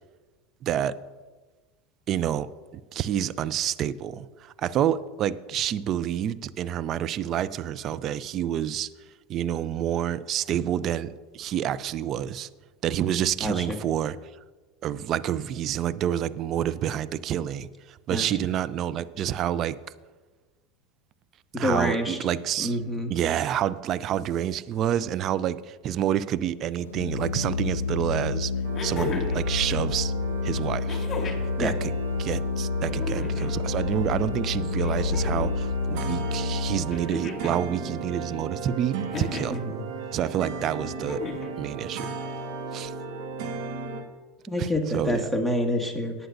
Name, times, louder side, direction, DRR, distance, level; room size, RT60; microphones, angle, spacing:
voice 1, 0.6-1.0 2.1-8.9 9.3-12.5 12.8-14.2 14.8-19.8 21.6-22.8 23.1-28.5 28.8-30.1 30.4-31.0 31.4-31.9 32.2-39.6 40.1-41.2 41.6-42.1 42.7-42.9 44.6-44.7 44.9-45.3, right 10 dB, 45° right, 16 dB, 0.5 m, -28 dB
voice 2, 13.4-13.8 18.1-18.3 21.5-22.2 22.6-23.1 31.6-31.7 39.7-39.9 44.5-46.1, left 1 dB, 5° right, 3 dB, 1.9 m, -27 dB
Organ, 26.8-37.1, left 4 dB, 85° left, 0.4 m, -29 dB
sound 1, 27.7-27.8 28.7-29.5 30.9-31.5 32.8-33.5 34.8-35.6 36.9-37.6 39.1-39.6 41.0-41.5 42.9-43.0, left 4 dB, 30° left, 2.6 m, -34 dB
sound 2, 28.6-44.0, right 5 dB, 60° right, 1.4 m, -36 dB
19.0 x 9.1 x 2.6 m, 1.3 s
hypercardioid pair, 80°, 0 cm